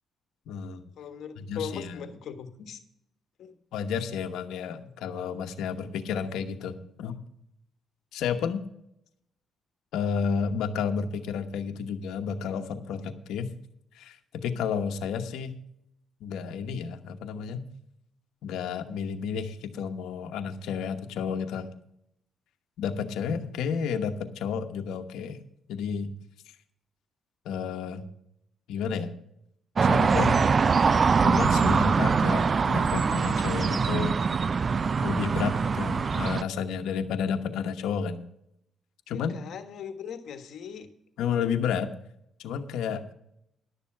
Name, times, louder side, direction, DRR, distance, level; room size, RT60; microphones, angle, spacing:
voice 1, 0.5-0.9 1.4-2.0 3.7-7.2 8.1-8.6 9.9-13.5 13.9-15.5 16.2-17.6 18.4-21.7 22.8-25.4 25.7-26.1 27.4-28.0 28.7-29.1 29.8-30.5 31.2-34.2 35.0-38.2 39.1-39.4 41.2-41.9 42.4-43.0, left 6 dB, 85° left, 6 dB, 1.0 m, -31 dB
voice 2, 1.0-2.8 3.4-3.5 39.1-40.9, left 7 dB, 70° left, 8 dB, 1.4 m, -39 dB
sound 1, 29.8-36.4, right 5 dB, 40° right, 0.4 m, -23 dB
11.5 x 6.9 x 7.3 m, 0.76 s
cardioid pair, 90°, 0 cm